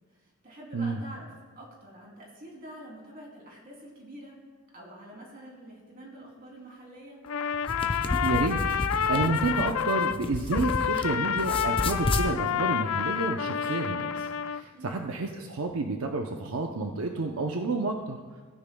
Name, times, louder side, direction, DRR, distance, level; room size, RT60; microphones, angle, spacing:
voice 1, 0.1-1.3 1.6-4.3 4.7-7.2 14.7-15.0, right 1 dB, 45° right, -2 dB, 3.0 m, -47 dB
Trumpet, 7.2-10.2 10.5-14.6, left 8 dB, 85° left, 0.4 m, -29 dB
sound 1, 7.5-11.1 11.4-12.3, left 2 dB, 25° left, 0.6 m, -31 dB
voice 2, 8.2-8.6 9.1-18.2, right 3 dB, 85° right, 3 dB, 0.7 m, -30 dB
16.5 x 9.8 x 2.3 m, 1.5 s
head